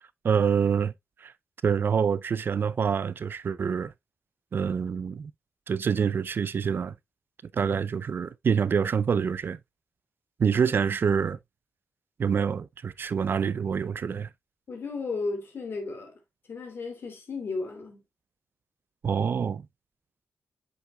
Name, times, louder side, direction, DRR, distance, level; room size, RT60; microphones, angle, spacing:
voice 1, 0.2-0.9 1.2-1.3 1.6-3.9 4.5-5.3 5.7-6.9 7.5-9.6 10.4-11.4 12.2-14.3 19.0-19.6, right 6 dB, 60° right, 0.5 m, -26 dB
voice 2, 14.7-16.1 16.5-18.0, left 3 dB, 60° left, 2.8 m, -34 dB
7.8 x 6.4 x 2.2 m
cardioid pair, 65°, 4 cm